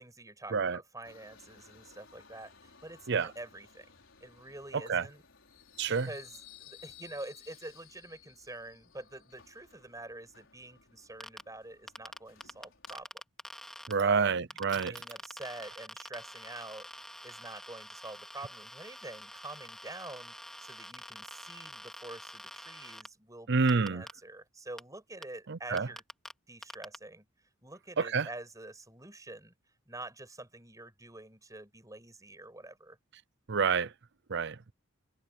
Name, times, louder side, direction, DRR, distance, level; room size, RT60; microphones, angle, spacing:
voice 1, 0.0-3.9 4.2-5.2 5.9-13.1 14.0-14.5 14.8-16.9 17.2-20.3 20.6-26.0 26.5-27.3 27.6-29.5 29.9-33.0, right 2 dB, 15° right, 5.6 m, -47 dB
Subway metro underground, 1.0-13.0, left 8 dB, 65° left, 5.7 m, -58 dB
sound 1, 11.2-11.4 11.9-13.9 14.5-23.1 23.7-24.1 24.8-24.9 25.2-25.3 25.8-26.3 26.6-27.0, equal, ahead, 2.8 m, -46 dB
voice 2, 13.9-14.9 23.5-24.0 25.5-25.9 28.0-28.3 33.5-33.9 34.3-34.7, right 5 dB, 60° right, 0.6 m, -28 dB
head